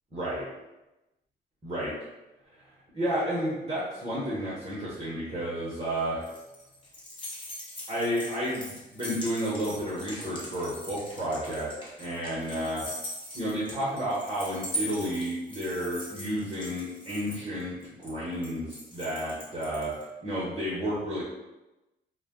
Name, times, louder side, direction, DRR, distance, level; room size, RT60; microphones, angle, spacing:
voice 1, 0.1-0.4 1.6-1.9 2.9-6.3 7.9-11.7 12.0-12.8 13.3-21.2, equal, 25° right, -7 dB, 0.9 m, -31 dB
sound 1, 5.8-20.0, equal, 25° left, 0.9 m, -41 dB
2.2 x 2.2 x 3.5 m, 1.0 s
cardioid pair, 90°, 20 cm